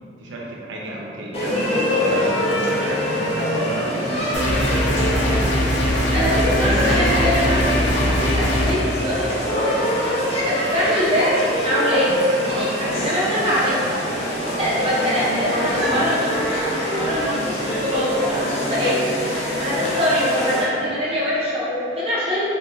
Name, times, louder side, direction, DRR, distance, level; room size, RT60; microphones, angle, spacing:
voice 1, 0.2-4.7 12.5-12.7, right 1 dB, 85° right, -3 dB, 0.4 m, -33 dB
sound 1, 1.3-20.6, equal, 35° left, 0.6 m, -24 dB
sound 2, 4.3-8.7, equal, 75° left, 0.5 m, -21 dB
voice 2, 6.1-9.8 10.5-11.3 11.6-13.8 14.6-18.9 19.5-22.5, equal, 35° right, -8 dB, 0.8 m, -23 dB
3.5 x 2.2 x 2.9 m, 2.5 s
head